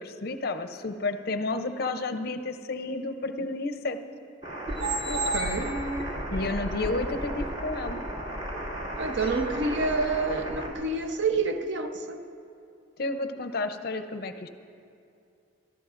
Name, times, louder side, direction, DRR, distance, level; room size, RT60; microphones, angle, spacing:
voice 1, 0.0-4.0 6.3-8.0 13.0-14.5, left 2 dB, 50° left, 0.5 m, -31 dB
sound 1, 4.4-10.7, right 1 dB, 30° right, 2.1 m, -32 dB
voice 2, 5.1-5.7 9.0-12.2, right 3 dB, 60° right, 0.7 m, -28 dB
22.5 x 14.0 x 2.5 m
head